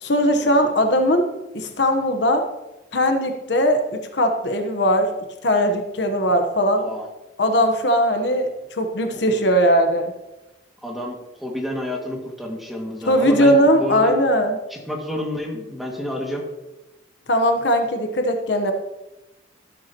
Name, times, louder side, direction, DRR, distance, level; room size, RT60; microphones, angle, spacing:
voice 1, 0.0-1.3 1.5-2.4 2.9-5.1 5.4-6.9 7.4-8.5 8.8-10.1 13.1-14.6 17.3-18.7, equal, 65° left, 5 dB, 1.1 m, -19 dB
voice 2, 6.6-7.0 9.1-9.4 10.8-14.1 14.7-16.4, equal, ahead, -2 dB, 2.0 m, -30 dB
12.5 x 12.5 x 3.0 m, 1.0 s
head